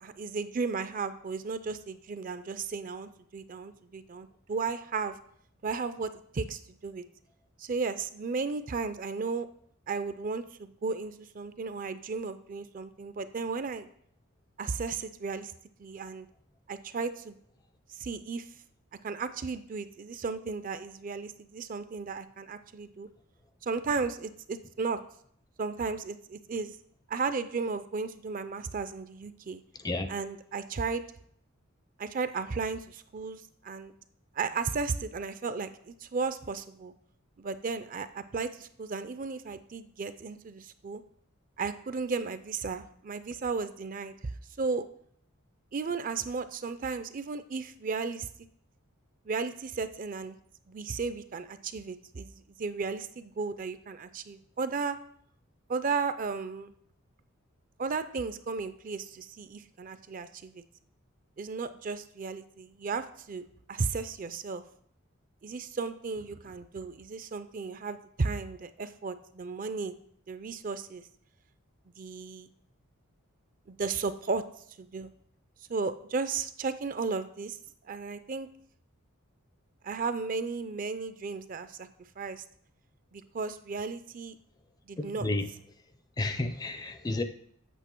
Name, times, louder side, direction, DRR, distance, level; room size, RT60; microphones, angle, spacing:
voice 1, 0.0-5.2 5.6-7.0 7.6-9.5 9.9-13.9 14.6-15.5 15.8-16.3 16.7-17.4 17.9-18.5 19.0-23.1 23.6-25.0 25.6-26.8 27.1-29.6 30.1-31.0 32.0-33.9 34.3-36.9 37.4-41.0 41.6-44.9 45.7-48.3 49.3-50.4 50.7-55.0 55.7-56.7 57.8-60.6 61.4-64.6 65.4-70.0 70.3-71.0 72.0-72.5 73.7-74.4 74.8-75.1 75.7-77.6 77.8-78.5 79.8-81.9 82.2-82.4 83.1-84.4 84.9-85.3, right 4 dB, 40° right, 12 dB, 0.4 m, -34 dB
voice 2, 85.0-85.5 86.2-87.2, left 2 dB, 20° left, 9 dB, 0.4 m, -31 dB
8.1 x 6.4 x 4.4 m, 0.64 s
head